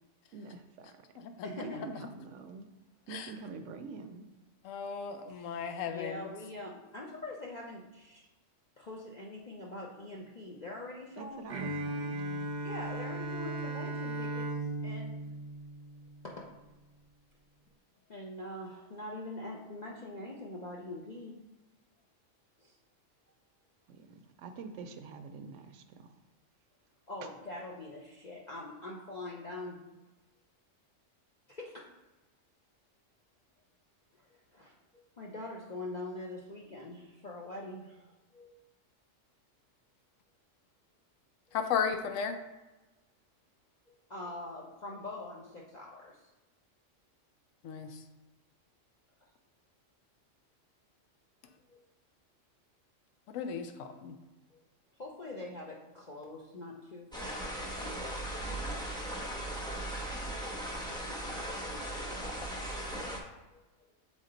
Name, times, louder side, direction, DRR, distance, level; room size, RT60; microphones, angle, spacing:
voice 1, 0.3-0.9 1.5-2.7 3.1-4.3 11.2-12.5 23.9-26.2 27.2-27.3, right 5 dB, 70° right, 8 dB, 0.9 m, -46 dB
voice 2, 1.4-1.9 5.3-8.2 8.8-11.5 12.6-14.5 14.8-15.2 16.2-16.5 18.1-21.4 22.6-22.7 27.1-30.0 31.5-31.9 34.2-34.3 34.5-38.1 38.3-38.6 44.1-46.2 51.7-51.8 54.5-54.6 55.0-57.5, left 2 dB, 40° left, -3 dB, 0.7 m, -44 dB
voice 3, 4.6-6.2 41.5-42.4 47.6-47.9 53.3-54.1, left 7 dB, 80° left, 7 dB, 1.0 m, -34 dB
Bowed string instrument, 11.5-16.4, right 2 dB, 50° right, 0.6 m, -37 dB
sound 1, 57.1-63.2, right 1 dB, 5° left, 0.6 m, -38 dB
7.2 x 3.8 x 3.8 m, 1.1 s
omnidirectional pair, 1.3 m